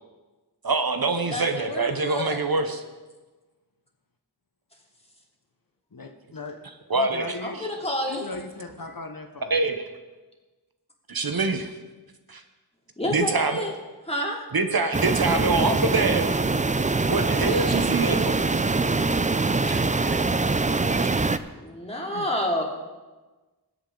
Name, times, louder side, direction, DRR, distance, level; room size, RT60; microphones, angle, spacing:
voice 1, 0.6-2.8 6.9-7.3 9.5-9.8 11.1-11.7 12.3-12.4 13.1-13.6 14.5-16.4 17.1-18.4 19.7-20.2 22.1-22.2, right 3 dB, 60° right, 7 dB, 1.0 m, -25 dB
voice 2, 1.3-2.4 7.4-8.3 13.0-13.7 14.1-14.4 21.5-22.6, left 1 dB, 15° left, -2 dB, 2.8 m, -29 dB
voice 3, 5.9-6.6 6.9-7.7 8.1-9.5, left 3 dB, 55° left, 5 dB, 1.0 m, -38 dB
sound 1, 14.9-21.4, right 3 dB, 20° right, 0.5 m, -23 dB
20.0 x 8.3 x 3.9 m, 1.2 s
wide cardioid pair, 50°, 40 cm